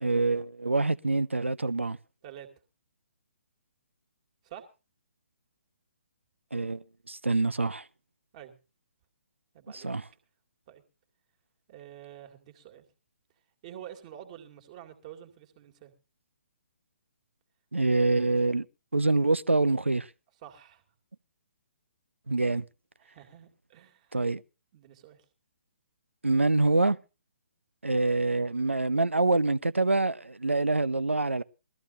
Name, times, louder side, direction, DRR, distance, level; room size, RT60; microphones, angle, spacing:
voice 1, 0.0-2.0 6.5-7.8 9.7-10.0 17.7-18.7 18.9-20.1 22.3-22.6 24.1-24.4 26.2-27.0 27.8-31.4, right 2 dB, 80° right, 0.6 m, -25 dB
voice 2, 9.5-9.9 10.7-10.8 11.7-12.9 13.6-15.9 20.4-20.8 23.0-24.2 24.7-25.2, right 11 dB, 30° right, 2.2 m, -48 dB
21.0 x 14.0 x 2.6 m
figure-of-eight pair, 135°, 7 cm